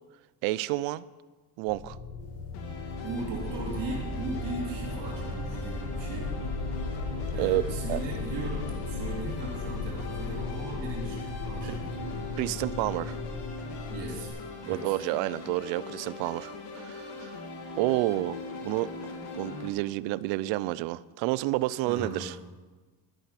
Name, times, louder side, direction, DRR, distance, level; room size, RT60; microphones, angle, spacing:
voice 1, 0.4-1.0 1.6-2.0 7.4-7.6 7.9-8.0 11.6-11.8 12.4-13.2 14.7-17.4 17.8-18.9 19.3-22.3, right 18 dB, 80° right, 19 dB, 0.6 m, -29 dB
sound 1, 1.7-14.3, left 3 dB, 85° left, 4.0 m, -36 dB
sound 2, 2.5-19.7, left 3 dB, 65° left, 2.2 m, -40 dB
voice 2, 3.0-6.4 7.3-12.1 13.9-14.3 14.6-14.9 21.9-22.3, right 3 dB, 60° right, -7 dB, 3.2 m, -38 dB
12.0 x 11.0 x 5.7 m, 1.3 s
cardioid pair, 160°, 44 cm